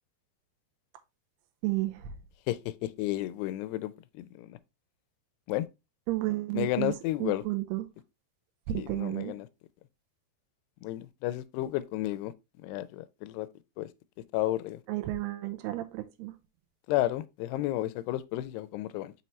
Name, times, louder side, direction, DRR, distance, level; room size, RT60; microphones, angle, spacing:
voice 1, 1.6-2.1 6.1-6.9 7.2-7.9 8.7-9.4 14.9-16.3, right 16 dB, 85° right, 2.6 m, -32 dB
voice 2, 2.5-4.6 5.5-5.7 6.5-7.4 8.8-9.5 10.8-12.3 12.6-13.5 13.8-13.9 14.3-14.8 16.9-19.1, left 15 dB, 90° left, 2.7 m, -32 dB
5.6 x 5.6 x 3.1 m
omnidirectional pair, 4.7 m